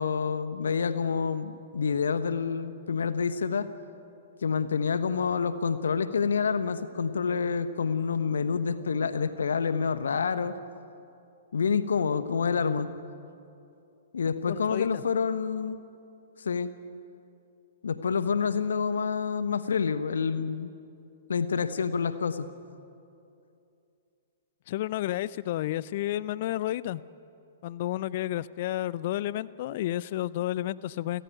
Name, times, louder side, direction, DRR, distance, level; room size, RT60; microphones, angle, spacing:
voice 1, 0.0-3.7 4.4-10.5 11.5-12.9 14.1-15.8 16.4-16.7 17.8-20.7 21.3-22.5, left 6 dB, 65° left, 12 dB, 1.2 m, -28 dB
voice 2, 14.5-15.0 24.7-27.0 27.6-31.2, left 14 dB, 45° left, 19 dB, 0.6 m, -31 dB
29.5 x 15.0 x 9.4 m, 2.7 s
figure-of-eight pair, 110°, 0 cm